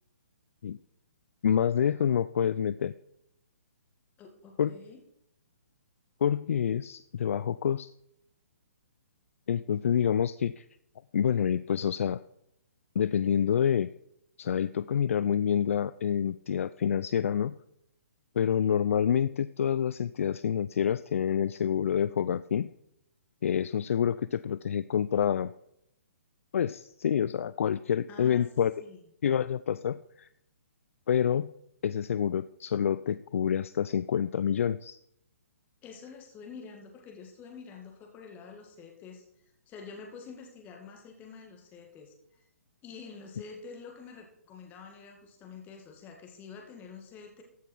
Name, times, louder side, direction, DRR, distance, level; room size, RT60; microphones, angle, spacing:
voice 1, 1.4-2.9 4.6-4.7 6.2-7.9 9.5-10.6 11.1-12.2 13.0-13.9 14.4-17.6 18.4-22.7 23.4-25.5 26.5-28.7 29.2-30.3 31.1-31.5 31.8-35.0, left 8 dB, 65° left, 15 dB, 0.4 m, -27 dB
voice 2, 4.2-5.0 28.1-28.5 28.8-29.0 35.8-39.2 39.7-42.1 42.8-47.4, left 5 dB, 20° left, 3 dB, 2.0 m, -47 dB
14.5 x 6.1 x 4.5 m, 0.77 s
hypercardioid pair, 135°, 8 cm